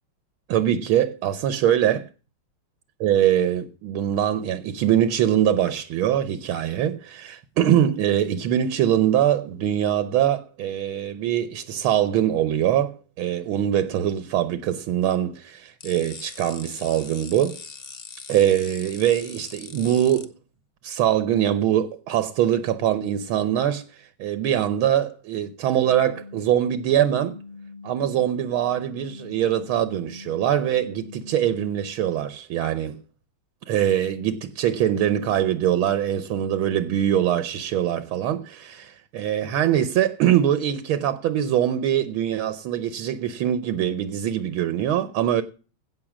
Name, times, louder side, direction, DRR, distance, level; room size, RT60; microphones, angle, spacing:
voice 1, 0.5-2.1 3.0-17.6 18.3-20.3 20.8-27.4 27.8-33.0 33.7-45.4, right 11 dB, 80° right, 1.7 m, -23 dB
sound 1, 15.8-20.3, left 5 dB, 45° left, 0.8 m, -41 dB
sound 2, 25.7-31.8, left 4 dB, 80° left, 0.5 m, -42 dB
16.0 x 6.4 x 6.1 m
omnidirectional pair, 2.3 m